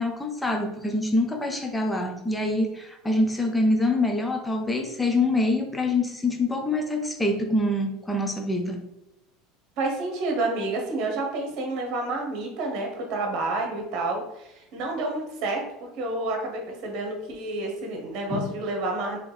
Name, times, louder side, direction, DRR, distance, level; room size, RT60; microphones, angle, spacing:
voice 1, 0.0-8.8 18.3-18.5, left 2 dB, 10° left, 3 dB, 0.7 m, -25 dB
voice 2, 9.8-19.2, right 2 dB, 60° right, 2 dB, 1.1 m, -29 dB
3.5 x 3.1 x 3.2 m, 0.86 s
supercardioid pair, 105°, 0 cm